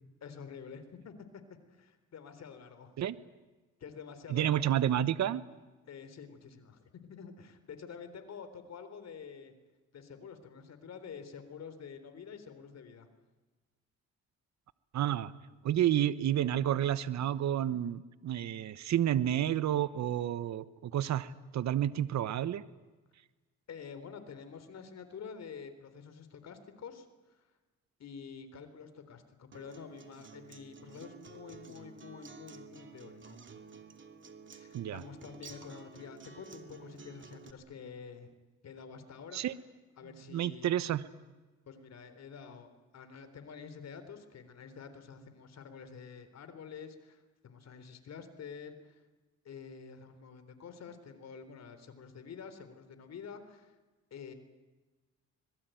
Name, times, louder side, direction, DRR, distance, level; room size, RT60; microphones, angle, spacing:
voice 1, 0.2-1.1 1.7-2.9 3.8-4.8 5.9-9.5 9.9-13.1 23.7-27.5 28.0-33.4 34.5-38.3 38.6-39.4 40.0-40.7 41.7-49.0 49.4-53.8 54.1-54.3, left 6 dB, 60° left, 10 dB, 3.9 m, -48 dB
voice 2, 4.3-5.4 14.9-15.3 15.6-22.6 34.7-35.0 39.3-39.5 40.3-41.0, right 11 dB, 65° right, 15 dB, 1.1 m, -30 dB
Acoustic guitar, 29.5-37.5, right 5 dB, 40° right, 2.8 m, -52 dB
26.0 x 21.5 x 9.2 m, 1.2 s
cardioid pair, 90°, 30 cm